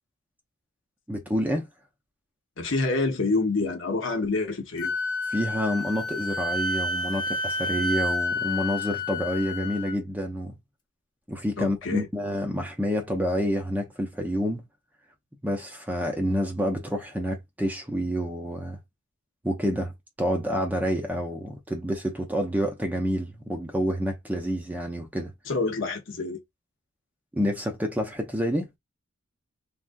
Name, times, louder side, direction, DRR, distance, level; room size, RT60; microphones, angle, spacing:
voice 1, 1.1-1.7 5.3-10.6 11.3-14.6 15.4-18.8 19.4-19.9 20.2-25.3 27.3-28.7, equal, 10° right, 0.6 m, -28 dB
voice 2, 2.6-4.9 11.6-12.1 25.5-26.4, left 3 dB, 60° left, 0.8 m, -27 dB
Wind instrument woodwind instrument, 4.8-10.0, left 2 dB, 20° left, 0.8 m, -29 dB
3.5 x 2.4 x 2.6 m
head